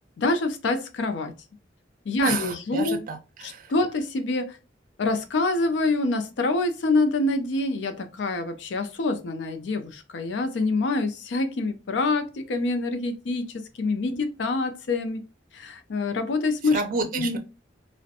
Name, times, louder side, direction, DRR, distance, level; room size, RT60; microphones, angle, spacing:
voice 1, 0.2-1.3 2.1-3.0 3.7-4.6 5.0-15.2 15.5-16.8 17.1-17.4, left 3 dB, 85° left, 0.4 m, -26 dB
voice 2, 2.2-3.7 16.6-17.4, right 4 dB, 50° right, 0.4 m, -30 dB
2.4 x 2.1 x 2.6 m
head